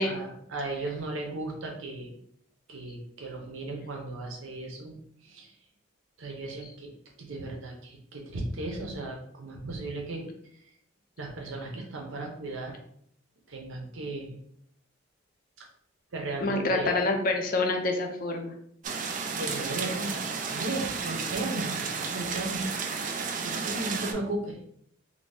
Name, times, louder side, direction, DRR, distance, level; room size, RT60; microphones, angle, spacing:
voice 1, 0.0-2.1 2.7-5.5 6.2-10.6 11.2-12.8 13.5-14.3 15.6-15.7 16.1-16.9 19.3-20.2 20.5-22.7 23.4-24.6, right 2 dB, 75° right, 1 dB, 0.7 m, -36 dB
voice 2, 16.4-18.5, left 2 dB, 45° left, 3 dB, 0.5 m, -27 dB
sound 1, 18.8-24.1, right 5 dB, 40° right, 0.3 m, -32 dB
2.7 x 2.7 x 3.3 m, 0.69 s
head